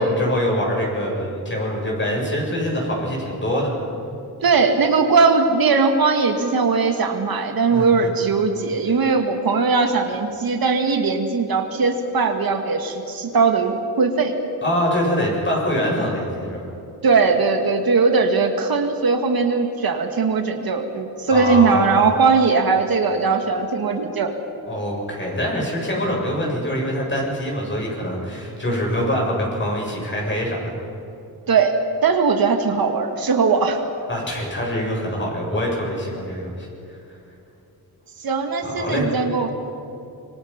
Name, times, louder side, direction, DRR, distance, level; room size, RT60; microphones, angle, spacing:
voice 1, 0.0-3.7 7.7-8.1 14.6-16.7 21.3-22.0 24.6-30.7 34.1-36.7 38.6-39.1, equal, 30° left, -2 dB, 7.8 m, -24 dB
voice 2, 4.4-14.3 17.0-24.3 31.5-33.8 38.2-39.5, right 4 dB, 65° right, 5 dB, 2.0 m, -19 dB
25.5 x 24.5 x 5.9 m, 2.7 s
wide cardioid pair, 125°, 39 cm